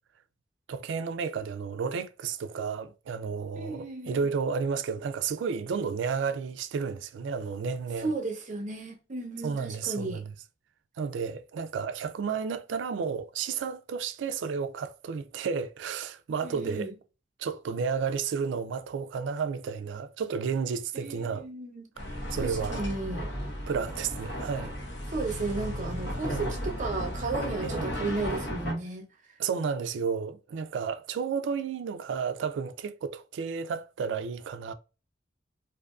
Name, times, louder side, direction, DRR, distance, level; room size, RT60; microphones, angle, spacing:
voice 1, 0.7-8.1 9.4-10.3 11.0-16.9 17.4-21.4 22.1-22.8 23.7-24.7 26.3-26.5 27.6-28.0 29.4-34.7, right 6 dB, 85° right, 0.3 m, -32 dB
voice 2, 3.6-4.3 8.0-10.2 16.4-16.9 21.0-21.9 22.4-23.3 25.1-29.4, right 3 dB, 45° right, 0.6 m, -34 dB
sound 1, 22.0-28.7, equal, 75° left, 0.9 m, -34 dB
2.6 x 2.4 x 2.3 m
head